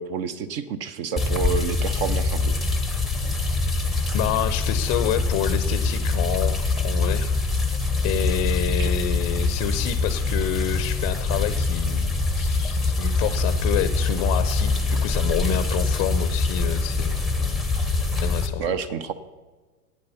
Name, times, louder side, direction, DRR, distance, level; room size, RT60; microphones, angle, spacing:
voice 1, 0.0-2.6 8.8-8.9 18.6-19.1, right 6 dB, 40° right, 13 dB, 0.7 m, -29 dB
sound 1, 1.2-18.5, left 3 dB, ahead, 0.7 m, -24 dB
voice 2, 4.1-7.3 8.0-17.2 18.2-18.7, left 10 dB, 30° left, 11 dB, 0.6 m, -28 dB
10.5 x 8.7 x 5.6 m, 1.3 s
hypercardioid pair, 110°, 47 cm